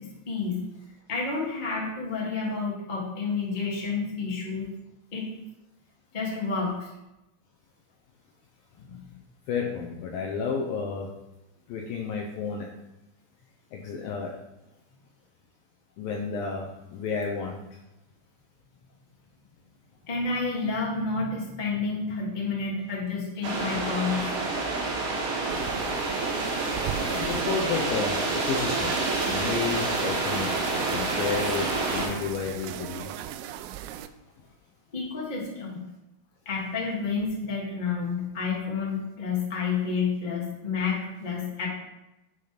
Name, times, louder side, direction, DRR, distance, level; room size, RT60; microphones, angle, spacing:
voice 1, 0.3-0.6 1.1-4.7 5.1-5.3 6.1-6.9 8.8-9.0 20.1-24.3 34.9-35.8 36.4-41.7, left 4 dB, 60° left, -3 dB, 0.4 m, -30 dB
voice 2, 9.5-11.1 11.7-12.7 13.7-14.3 16.0-16.7 16.9-17.6 27.1-28.2 28.5-28.9 29.3-33.1, left 5 dB, 80° left, 0 dB, 2.1 m, -31 dB
sound 1, 23.4-32.1, right 3 dB, 65° right, 1.3 m, -28 dB
sound 2, 25.5-34.1, right 11 dB, 85° right, 2.7 m, -38 dB
9.8 x 5.6 x 5.1 m, 0.94 s
omnidirectional pair, 5.2 m